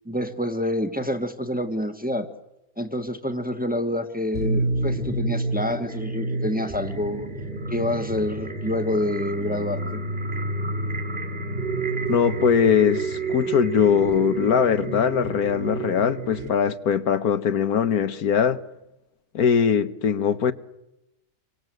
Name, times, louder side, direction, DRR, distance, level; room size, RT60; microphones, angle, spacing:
voice 1, 0.0-2.3 2.8-7.3 7.7-10.0, left 1 dB, 5° right, 1.6 m, -27 dB
sound 1, 4.3-16.5, right 2 dB, 40° right, 2.8 m, -29 dB
voice 2, 12.1-18.6 19.3-20.5, left 7 dB, 80° left, 1.7 m, -21 dB
28.0 x 24.0 x 7.9 m
omnidirectional pair, 1.6 m